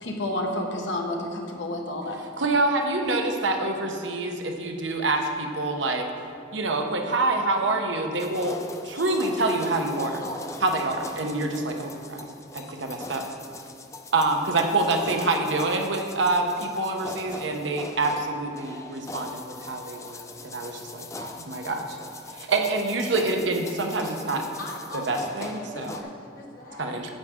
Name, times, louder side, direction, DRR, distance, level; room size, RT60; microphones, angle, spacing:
voice 1, 0.0-2.2, left 1 dB, 80° left, 2 dB, 1.2 m, -30 dB
voice 2, 2.4-6.1 6.5-8.6 8.8-10.2 10.6-12.2 12.5-13.2 14.1-22.0 22.3-24.4 24.9-26.0 26.8-27.1, right 2 dB, 85° right, 3 dB, 0.9 m, -26 dB
sound 1, 8.2-26.0, left 3 dB, 15° left, 0.4 m, -41 dB
voice 3, 24.6-26.9, left 1 dB, 50° left, -1 dB, 1.3 m, -40 dB
9.4 x 8.1 x 3.7 m, 2.5 s
head